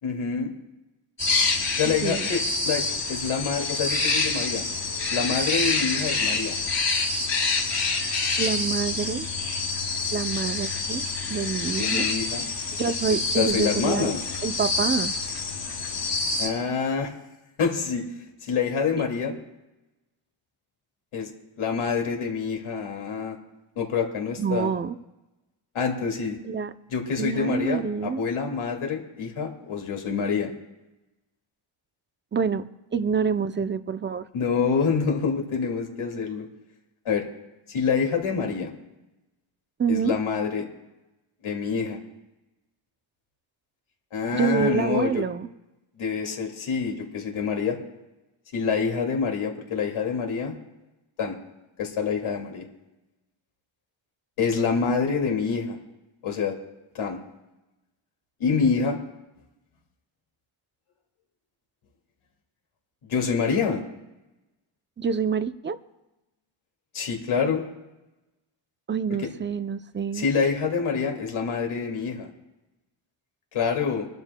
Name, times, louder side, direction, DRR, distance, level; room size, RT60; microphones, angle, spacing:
voice 1, 0.0-0.5 1.8-4.6 5.1-6.6 11.8-12.4 13.1-14.2 16.4-17.1 17.6-18.1 18.4-19.3 21.1-21.3 21.6-23.4 23.8-24.7 25.7-26.4 26.9-30.5 34.3-36.5 37.1-37.2 37.7-38.7 39.9-40.7 41.4-42.0 44.1-45.2 46.0-47.8 48.5-50.5 51.2-51.4 51.8-52.7 54.4-55.8 56.2-56.6 56.9-57.2 58.4-59.0 63.1-63.8 66.9-67.6 70.1-72.3 73.5-74.1, left 5 dB, 85° left, 1 dB, 2.3 m, -26 dB
sound 1, 1.2-16.5, left 3 dB, 60° left, 3.3 m, -27 dB
voice 2, 1.9-2.3 8.4-9.3 10.1-11.0 11.3-12.1 12.8-14.1 14.4-15.1 24.4-24.9 26.4-26.7 27.2-28.2 32.3-32.6 32.9-34.3 39.8-40.2 44.3-45.5 65.0-65.8 68.9-70.3, right 6 dB, 25° right, 11 dB, 0.5 m, -27 dB
25.5 x 12.0 x 2.2 m, 1.0 s
wide cardioid pair, 140°, 49 cm